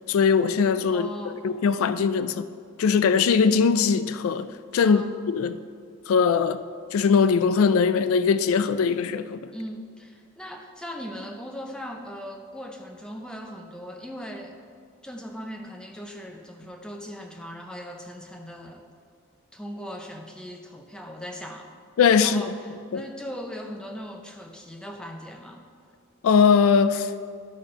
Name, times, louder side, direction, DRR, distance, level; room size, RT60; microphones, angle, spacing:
voice 1, 0.1-2.5 2.8-5.6 6.1-6.6 6.9-9.4 22.0-22.4 22.9-23.0 26.2-27.1, left 6 dB, 65° left, 0.3 m, -21 dB
voice 2, 0.9-1.4 4.8-5.2 9.5-14.6 15.0-18.8 19.5-21.7 22.2-25.6, equal, 5° left, 0.6 m, -39 dB
11.5 x 4.2 x 4.9 m
head